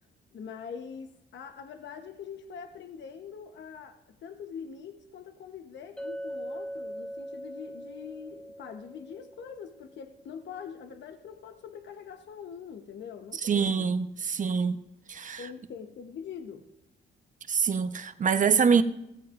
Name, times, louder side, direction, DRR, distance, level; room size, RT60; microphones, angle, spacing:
voice 1, 0.3-13.9 15.4-16.7, left 7 dB, 65° left, 6 dB, 1.1 m, -43 dB
Chink clink, 6.0-10.2, equal, 5° left, 1.3 m, -41 dB
voice 2, 13.4-14.8 15.1-15.4 17.5-18.8, right 6 dB, 40° right, 9 dB, 1.0 m, -25 dB
16.5 x 15.5 x 2.6 m, 0.87 s
cardioid pair, 90°, 20 cm